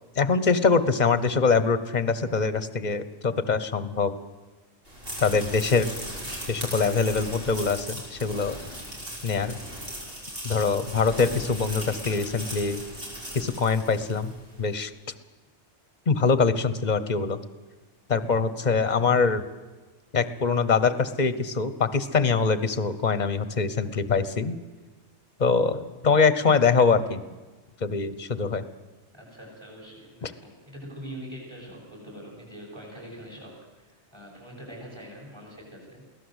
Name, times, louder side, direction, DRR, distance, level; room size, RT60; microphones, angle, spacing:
voice 1, 0.2-4.1 5.2-5.9 6.5-8.6 9.2-9.6 10.4-12.8 13.3-14.3 14.6-14.9 16.1-17.4 18.1-19.4 20.1-24.6 25.4-27.2 27.8-28.6 30.2-30.3, left 5 dB, 40° left, 14 dB, 1.2 m, -23 dB
sound 1, 4.9-14.4, equal, 55° right, 6.4 m, -38 dB
voice 2, 12.0-12.6 26.4-26.6 29.1-36.0, equal, 25° right, -1 dB, 8.1 m, -43 dB
23.0 x 17.0 x 8.1 m, 1.3 s
omnidirectional pair, 1.1 m